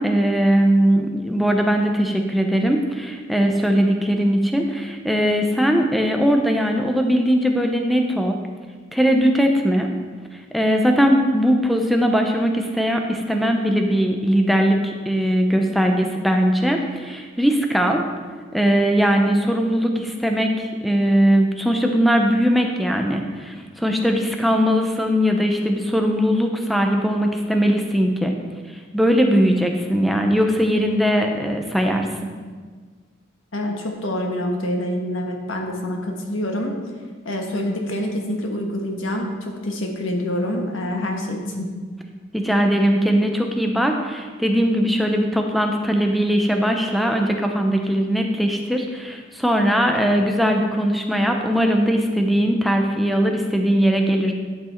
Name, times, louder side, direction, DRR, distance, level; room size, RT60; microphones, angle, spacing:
voice 1, 0.0-8.4 8.9-9.9 10.5-18.0 18.5-28.3 28.9-32.1 42.3-54.3, equal, ahead, 3 dB, 0.7 m, -20 dB
voice 2, 33.5-36.8 37.2-41.7, left 1 dB, 90° left, 1 dB, 1.5 m, -26 dB
11.0 x 5.9 x 4.5 m, 1.5 s
head